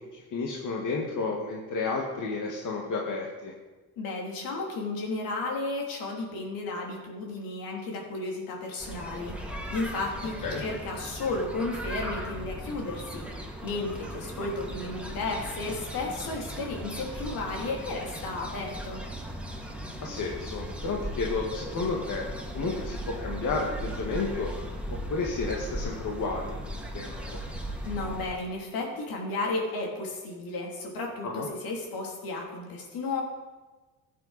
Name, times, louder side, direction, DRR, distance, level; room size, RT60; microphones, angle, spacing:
voice 1, 0.1-3.5 10.4-10.6 20.0-22.3 22.5-24.5 24.9-27.4 31.2-31.5, left 4 dB, 55° left, -1 dB, 1.8 m, -32 dB
voice 2, 4.0-13.3 13.6-19.0 27.8-33.2, left 3 dB, 70° left, -1 dB, 3.0 m, -33 dB
sound 1, 8.8-28.3, right 1 dB, 5° right, 2.1 m, -37 dB
14.5 x 8.4 x 4.1 m, 1.3 s
supercardioid pair, 65°, 36 cm